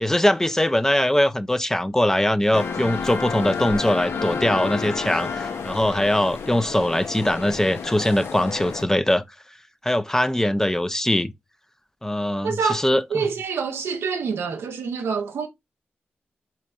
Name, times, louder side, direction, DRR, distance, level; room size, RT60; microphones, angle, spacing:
voice 1, 0.0-9.2 9.8-11.3 12.0-13.3, left 1 dB, 10° left, 0.4 m, -22 dB
sound 1, 2.5-8.8, left 5 dB, 75° left, 0.5 m, -30 dB
voice 2, 12.4-12.8 13.1-15.5, right 5 dB, 85° right, 0.6 m, -26 dB
4.1 x 2.9 x 2.4 m
supercardioid pair, 45°, 4 cm